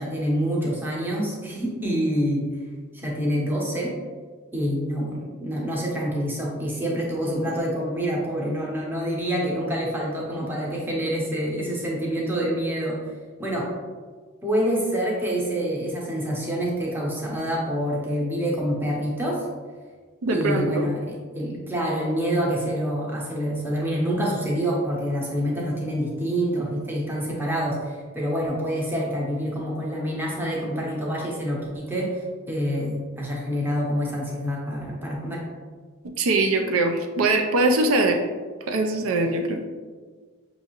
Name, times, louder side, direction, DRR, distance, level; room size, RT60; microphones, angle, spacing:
voice 1, 0.0-2.5 2.9-3.9 4.5-13.0 13.4-13.7 14.4-19.4 20.3-35.4, equal, 10° right, -3 dB, 0.7 m, -27 dB
voice 2, 20.2-20.9 36.2-38.2 38.7-39.6, right 2 dB, 75° right, 4 dB, 0.4 m, -22 dB
5.7 x 2.7 x 2.8 m, 1.5 s
head